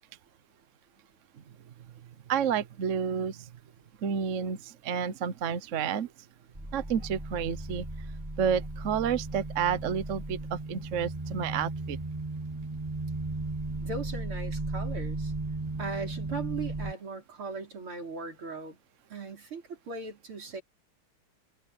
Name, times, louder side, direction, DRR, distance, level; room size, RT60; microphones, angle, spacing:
voice 1, 2.3-3.4 4.0-6.1 6.7-7.8 8.4-12.0, right 7 dB, 50° right, 1.0 m, -30 dB
sound 1, 6.5-16.9, right 2 dB, 10° right, 4.2 m, -36 dB
voice 2, 13.8-15.3 15.8-18.8 19.1-20.6, right 4 dB, 80° right, 5.5 m, -38 dB
omnidirectional pair, 2.3 m